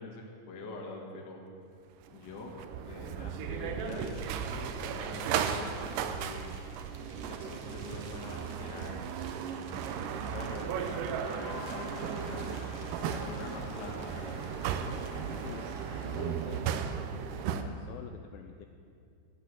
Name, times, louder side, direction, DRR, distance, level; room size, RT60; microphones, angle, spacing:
voice 1, 0.0-1.4 2.1-2.5 2.8-6.5 7.1-9.2 9.4-12.6 13.1-14.4, left 2 dB, 60° left, 0 dB, 1.1 m, -44 dB
sound 1, 2.1-17.6, right 7 dB, 85° right, 1.9 m, -36 dB
sound 2, 3.8-16.6, right 4 dB, 70° right, 1.7 m, -54 dB
Crowd, 10.2-17.0, left 2 dB, 45° left, 1.3 m, -48 dB
voice 2, 16.0-16.6 17.0-18.7, left 9 dB, 85° left, 6 dB, 2.0 m, -47 dB
12.0 x 8.3 x 7.5 m, 2.5 s
omnidirectional pair, 4.5 m